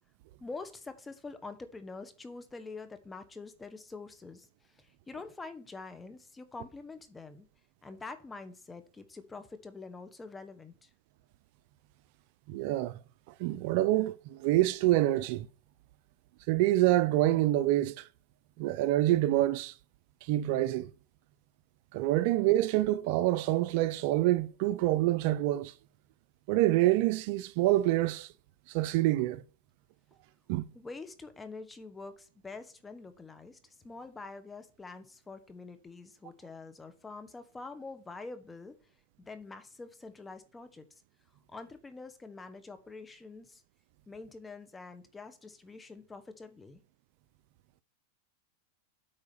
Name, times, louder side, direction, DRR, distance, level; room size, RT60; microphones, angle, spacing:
voice 1, 0.4-7.5 7.8-10.9 30.7-38.7 39.2-40.8 41.5-43.6 44.1-46.8, left 3 dB, 15° left, 1.3 m, -46 dB
voice 2, 12.5-13.0 13.4-15.5 16.5-18.1 18.6-19.7 20.2-20.9 21.9-25.7 26.5-28.3 28.7-29.4 30.5-30.6, right 15 dB, 60° right, 0.5 m, -26 dB
8.7 x 4.8 x 7.0 m
hypercardioid pair, 120°, 0 cm